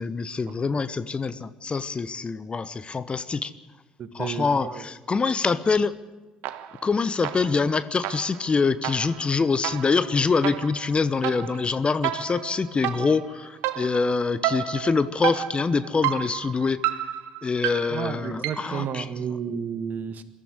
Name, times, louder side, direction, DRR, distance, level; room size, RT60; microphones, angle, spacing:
voice 1, 0.0-3.5 4.1-5.9 6.8-16.8 17.4-19.0, left 4 dB, 30° left, 15 dB, 1.0 m, -25 dB
voice 2, 4.0-4.8 17.9-20.2, right 7 dB, 50° right, 11 dB, 1.8 m, -32 dB
sound 1, 6.4-6.9 7.2-18.8, right 13 dB, 65° right, 1.1 m, -32 dB
22.0 x 14.0 x 9.8 m, 1.2 s
hypercardioid pair, 55°, 4 cm